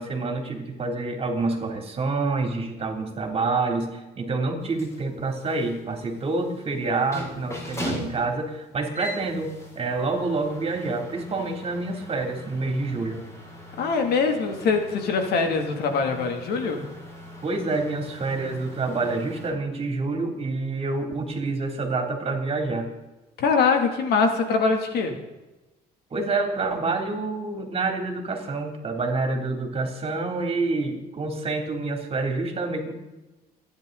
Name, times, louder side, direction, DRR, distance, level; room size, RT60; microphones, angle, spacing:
voice 1, 0.0-13.2 17.4-22.9 26.1-32.9, right 3 dB, 35° right, 3 dB, 3.2 m, -27 dB
sound 1, 4.6-19.5, left 1 dB, 15° left, 5.8 m, -40 dB
voice 2, 13.8-16.9 23.4-25.2, left 4 dB, 70° left, 4 dB, 2.8 m, -23 dB
30.0 x 10.5 x 4.0 m, 1.1 s
cardioid pair, 110°, 17 cm